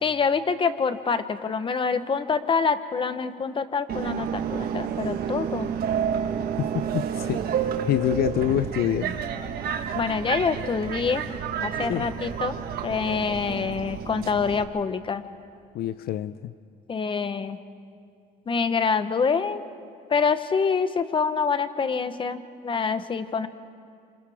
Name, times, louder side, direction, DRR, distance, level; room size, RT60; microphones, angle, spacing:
voice 1, 0.0-5.7 9.9-11.2 11.6-12.5 12.8-15.2 16.9-17.6 18.5-19.6 20.1-23.5, left 5 dB, 30° left, 11 dB, 1.0 m, -26 dB
Subway metro underground, 3.9-14.6, right 7 dB, 65° right, 1.4 m, -30 dB
voice 2, 6.6-9.1 11.9-12.1 15.7-16.5, left 11 dB, 65° left, 13 dB, 0.5 m, -27 dB
28.0 x 26.5 x 3.6 m, 2.3 s
cardioid pair, 110°, 17 cm